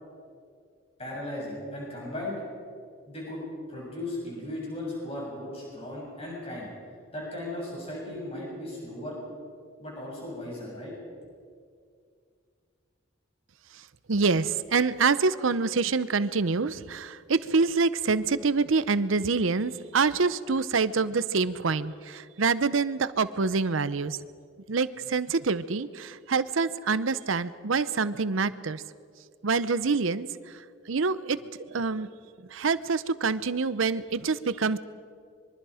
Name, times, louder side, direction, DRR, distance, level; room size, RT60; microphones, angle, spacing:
voice 1, 1.0-2.4 3.1-6.7 7.1-9.2 9.8-10.9, left 1 dB, 30° left, -4 dB, 6.9 m, -36 dB
voice 2, 13.7-24.2 24.7-28.8 29.4-32.1 32.5-34.8, right 4 dB, 80° right, 15 dB, 0.7 m, -26 dB
25.0 x 23.0 x 5.0 m, 2.2 s
head